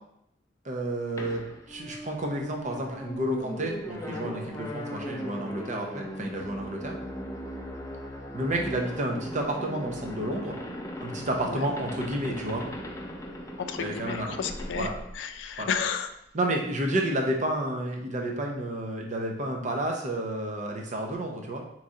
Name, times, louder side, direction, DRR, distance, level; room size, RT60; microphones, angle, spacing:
voice 1, 0.6-1.4 1.7-6.9 8.3-10.6 11.0-12.6 13.8-14.4 14.8-14.9 15.6-15.7 16.3-21.8, right 1 dB, 40° right, 1 dB, 0.7 m, -30 dB
sound 1, 1.2-15.7, equal, 15° left, 0.5 m, -38 dB
voice 2, 13.6-14.9 15.1-16.1, left 6 dB, 80° left, 8 dB, 0.4 m, -32 dB
4.0 x 3.1 x 3.6 m, 0.78 s
head